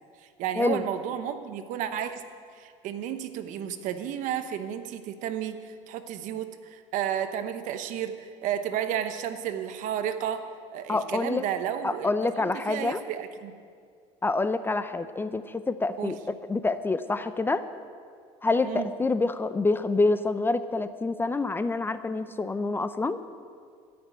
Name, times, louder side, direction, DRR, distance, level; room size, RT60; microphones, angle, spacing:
voice 1, 0.4-2.2 2.5-10.4 10.7-12.1 12.4-13.5 16.0-16.1 18.6-18.9, right 10 dB, 65° right, 10 dB, 1.0 m, -32 dB
voice 2, 10.9-11.4 11.8-13.0 14.2-17.6 18.4-23.2, left 3 dB, 15° left, 12 dB, 0.5 m, -27 dB
13.5 x 6.1 x 9.3 m, 2.2 s
supercardioid pair, 105°, 14 cm